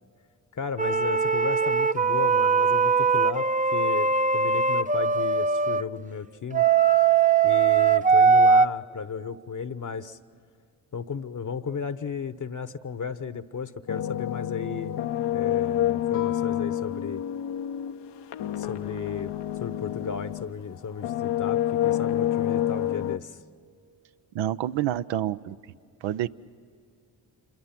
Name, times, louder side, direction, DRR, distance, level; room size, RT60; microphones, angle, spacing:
voice 1, 0.5-3.5 3.7-6.6 7.4-10.2 10.9-14.9 15.3-17.2 18.5-23.4, left 6 dB, 40° left, 13 dB, 1.0 m, -34 dB
sound 1, 0.8-5.8 6.5-8.7, right 5 dB, 15° right, 0.7 m, -21 dB
sound 2, 13.9-20.6 21.0-23.2, left 12 dB, 60° left, 0.8 m, -28 dB
Guitar, 16.1-18.6, left 7 dB, 85° left, 1.3 m, -44 dB
voice 2, 24.3-25.6 26.0-26.3, right 12 dB, 70° right, 14 dB, 0.7 m, -28 dB
26.5 x 22.5 x 6.0 m, 2.3 s
hypercardioid pair, 40°, 47 cm